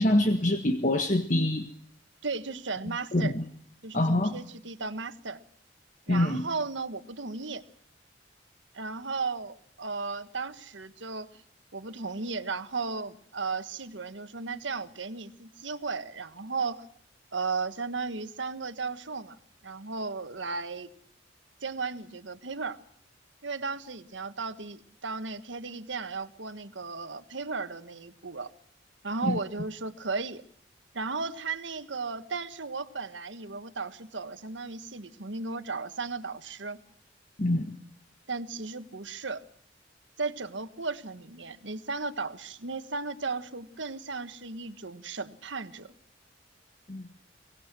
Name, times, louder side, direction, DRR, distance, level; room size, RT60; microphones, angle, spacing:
voice 1, 0.0-1.7 3.1-3.4 3.9-4.3 6.1-6.4 29.2-29.4 37.4-37.7 46.9-47.1, left 1 dB, 40° left, 6 dB, 1.5 m, -25 dB
voice 2, 2.2-3.3 3.8-5.4 6.1-7.6 8.7-11.4 11.7-16.9 17.3-19.4 19.6-20.9 21.6-22.8 23.4-28.5 29.0-30.4 30.9-36.8 38.3-39.4 40.2-45.9, right 4 dB, 80° right, 10 dB, 1.5 m, -35 dB
24.0 x 19.0 x 6.2 m, 0.63 s
head